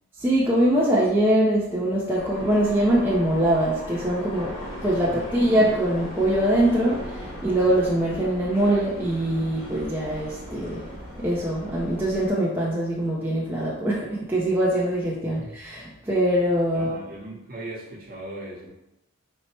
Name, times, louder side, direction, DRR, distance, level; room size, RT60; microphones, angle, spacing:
voice 1, 0.2-4.5 4.8-10.8 11.2-16.9, right 1 dB, 10° right, -7 dB, 0.5 m, -23 dB
sound 1, 2.1-12.3, equal, 75° left, 1.3 m, -38 dB
voice 2, 16.7-18.7, right 1 dB, 40° right, -4 dB, 1.0 m, -39 dB
4.3 x 2.1 x 4.3 m, 0.89 s
head